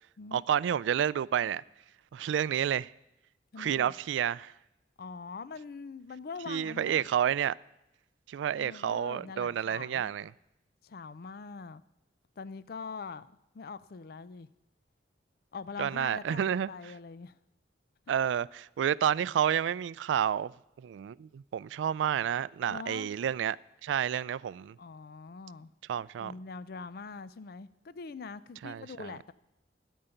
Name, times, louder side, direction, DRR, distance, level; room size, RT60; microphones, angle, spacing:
voice 1, 0.3-1.6 2.1-2.9 3.6-4.5 6.5-7.5 8.3-10.3 15.8-16.9 18.1-20.5 20.8-23.6 23.8-24.8 25.9-26.3 28.6-29.2, right 9 dB, 90° right, 0.3 m, -30 dB
voice 2, 3.5-3.9 5.0-7.0 8.6-10.1 10.8-11.8 12.4-13.3 13.5-14.5 15.5-17.4 22.7-23.1 24.8-25.7 26.2-29.3, left 4 dB, 55° left, 0.4 m, -43 dB
12.5 x 5.5 x 9.0 m
head